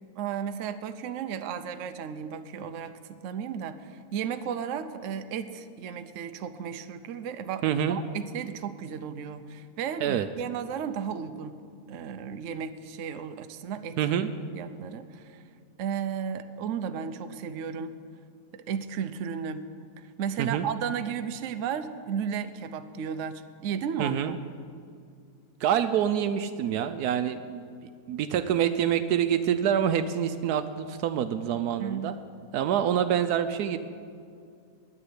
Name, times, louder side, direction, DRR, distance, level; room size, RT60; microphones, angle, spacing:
voice 1, 0.2-11.6 11.9-14.0 14.5-15.4 15.8-18.0 18.5-19.7 20.2-24.3 31.8-32.2, right 7 dB, 65° right, 9 dB, 0.9 m, -34 dB
voice 2, 7.6-8.0 10.0-10.3 14.0-14.3 20.4-20.7 24.0-24.4 25.6-32.1 32.5-33.8, right 9 dB, 80° right, 10 dB, 1.1 m, -26 dB
9.7 x 8.7 x 9.9 m, 2.3 s
omnidirectional pair, 1.7 m